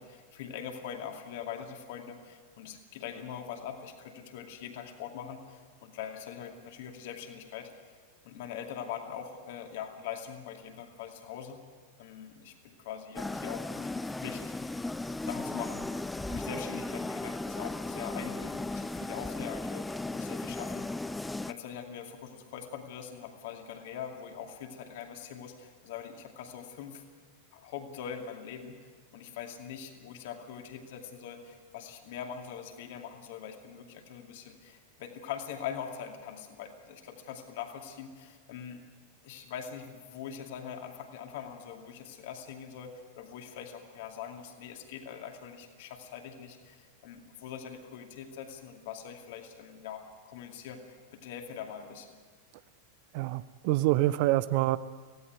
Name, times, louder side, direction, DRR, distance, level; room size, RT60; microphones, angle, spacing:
voice 1, 0.0-8.0 8.2-11.6 12.0-14.5 15.2-15.9 16.3-20.9 21.5-27.0 27.5-38.8 39.2-52.1, left 8 dB, 50° left, 4 dB, 2.5 m, -42 dB
sound 1, 13.2-21.5, left 2 dB, 5° left, 0.6 m, -36 dB
voice 2, 53.1-54.8, right 17 dB, 45° right, 17 dB, 0.6 m, -26 dB
17.5 x 16.5 x 9.2 m, 1.5 s
figure-of-eight pair, 90°, 0 cm